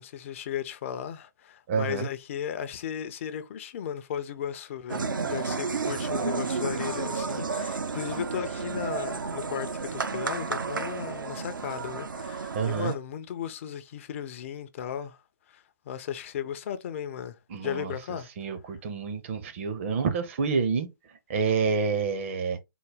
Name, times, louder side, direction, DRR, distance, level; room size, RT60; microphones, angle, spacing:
voice 1, 0.0-15.2 15.5-17.4 17.6-18.3, left 9 dB, 40° left, 0.4 m, -35 dB
voice 2, 1.7-2.1 12.5-12.9 17.5-17.9 18.4-20.9 21.3-22.6, right 5 dB, 40° right, 0.7 m, -28 dB
sound 1, 4.9-13.0, right 4 dB, 75° right, 0.6 m, -32 dB
3.8 x 2.1 x 3.3 m
figure-of-eight pair, 130°, 11 cm